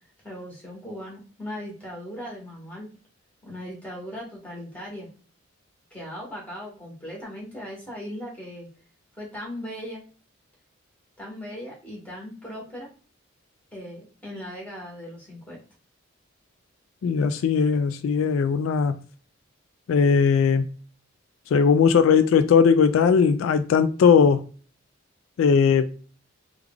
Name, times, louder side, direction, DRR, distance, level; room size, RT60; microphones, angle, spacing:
voice 1, 0.2-2.9 3.4-5.1 5.9-8.7 9.2-10.0 11.2-12.9 13.7-15.6, equal, 10° left, 1.4 m, -38 dB
voice 2, 17.0-19.0 19.9-20.7 21.5-24.5 25.4-25.9, left 6 dB, 85° left, 0.3 m, -19 dB
3.2 x 2.3 x 3.5 m
head